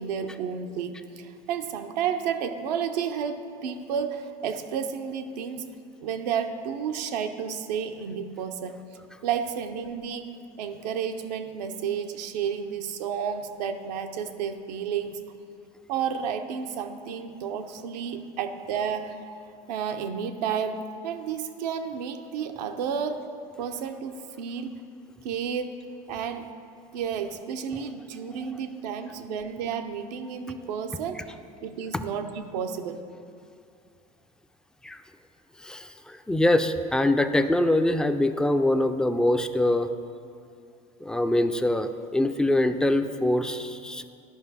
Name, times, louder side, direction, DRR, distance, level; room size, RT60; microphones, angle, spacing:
voice 1, 0.0-5.6 6.0-8.8 9.2-15.2 15.9-19.4 19.7-23.2 23.6-24.7 25.2-25.8 26.1-26.5 26.9-31.2 31.6-33.0, right 7 dB, 85° right, 6 dB, 0.6 m, -31 dB
voice 2, 35.6-39.9 41.0-44.0, left 1 dB, 5° left, 8 dB, 0.4 m, -24 dB
11.5 x 5.2 x 4.0 m, 2.4 s
hypercardioid pair, 90°, 21 cm